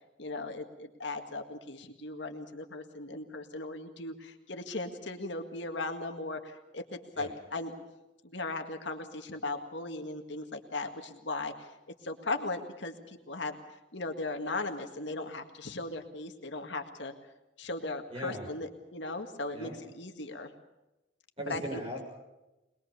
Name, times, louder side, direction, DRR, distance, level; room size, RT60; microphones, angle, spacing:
voice 1, 0.2-7.7 8.2-13.6 13.9-17.1 17.6-20.5 21.5-21.6, left 2 dB, 70° left, 5 dB, 1.9 m, -38 dB
voice 2, 18.1-18.5 19.5-19.8 21.4-22.0, equal, 30° right, 0 dB, 7.1 m, -38 dB
23.0 x 21.0 x 6.9 m, 0.99 s
head